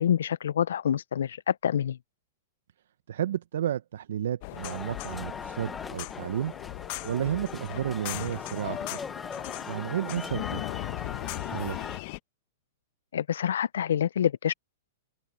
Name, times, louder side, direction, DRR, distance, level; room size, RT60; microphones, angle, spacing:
voice 1, 0.0-2.0 13.1-14.5, left 9 dB, 80° left, 0.4 m, -27 dB
voice 2, 3.1-6.5 7.0-9.0 9.7-10.6 11.4-11.8, right 10 dB, 75° right, 0.8 m, -32 dB
sound 1, 4.4-12.2, left 23 dB, 50° left, 0.9 m, -38 dB
sound 2, 4.6-12.0, left 5 dB, 15° left, 0.7 m, -40 dB
open air
hypercardioid pair, 120°, 0 cm